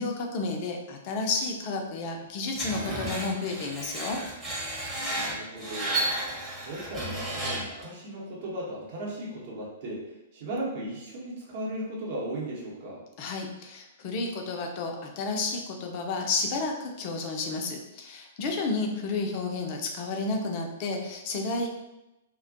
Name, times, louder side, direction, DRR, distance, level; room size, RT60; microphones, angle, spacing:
voice 1, 0.0-4.2 13.2-21.7, left 3 dB, 40° left, 2 dB, 0.4 m, -31 dB
Screech, 2.6-7.8, right 1 dB, 10° right, 0.8 m, -32 dB
voice 2, 5.1-6.0 6.6-10.1 10.3-13.0, right 1 dB, 45° right, -4 dB, 0.8 m, -36 dB
2.4 x 2.1 x 2.6 m, 0.96 s
figure-of-eight pair, 105°, 0 cm